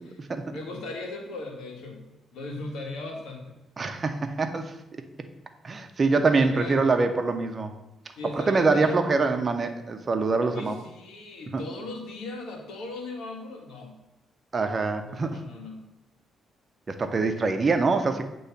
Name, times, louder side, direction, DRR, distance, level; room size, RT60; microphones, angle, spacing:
voice 1, 0.0-0.4 3.8-4.7 5.6-7.7 8.3-10.7 11.5-11.6 14.5-15.4 16.9-18.2, right 3 dB, 35° right, 7 dB, 0.8 m, -24 dB
voice 2, 0.5-2.0 2.3-3.5 6.4-6.8 8.1-9.5 10.4-13.9 15.1-15.8, left 2 dB, 80° left, 2 dB, 1.5 m, -38 dB
8.0 x 3.1 x 5.8 m, 0.98 s
cardioid pair, 90°, 0 cm